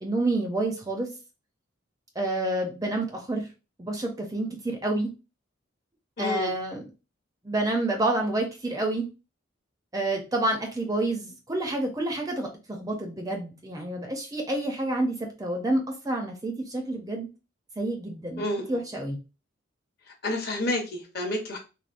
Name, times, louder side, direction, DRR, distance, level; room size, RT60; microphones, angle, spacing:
voice 1, 0.0-1.1 2.2-3.4 3.8-5.1 6.2-6.8 7.4-9.1 9.9-17.3 17.8-18.4 18.7-19.2, right 2 dB, 20° right, 2 dB, 0.4 m, -28 dB
voice 2, 6.2-6.5 18.4-18.8 20.2-21.6, left 1 dB, 50° left, 2 dB, 0.8 m, -29 dB
3.4 x 2.1 x 2.5 m, 0.30 s
head